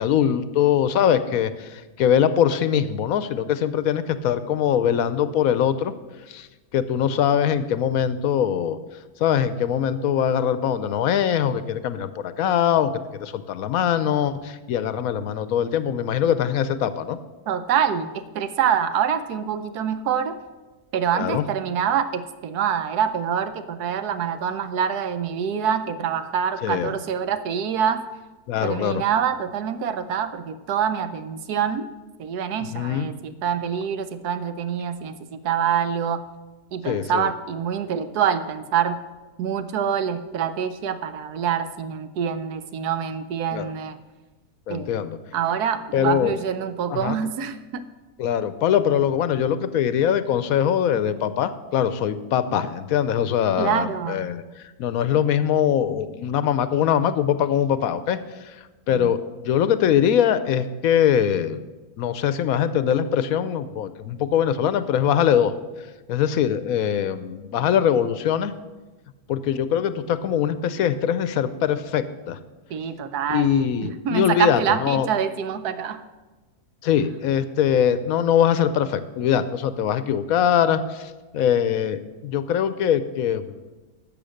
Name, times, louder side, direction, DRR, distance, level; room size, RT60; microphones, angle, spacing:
voice 1, 0.0-5.9 6.3-6.5 6.7-8.8 9.2-17.2 21.1-21.4 26.6-26.9 28.5-29.0 32.6-33.1 36.8-37.3 43.5-43.7 44.7-45.2 45.9-46.3 46.9-47.2 48.2-54.4 54.8-58.6 58.9-59.2 59.4-61.6 62.0-65.5 66.1-68.5 69.3-72.4 73.3-75.1 76.8-83.5, left 9 dB, 70° left, 13 dB, 1.0 m, -22 dB
voice 2, 17.5-20.3 20.9-28.0 28.6-31.9 32.2-36.2 36.7-39.0 39.4-44.0 44.7-45.1 45.3-47.8 53.6-54.3 58.9-59.1 72.7-76.0, right 8 dB, 80° right, 11 dB, 1.3 m, -25 dB
12.0 x 7.1 x 6.4 m, 1.2 s
omnidirectional pair, 1.7 m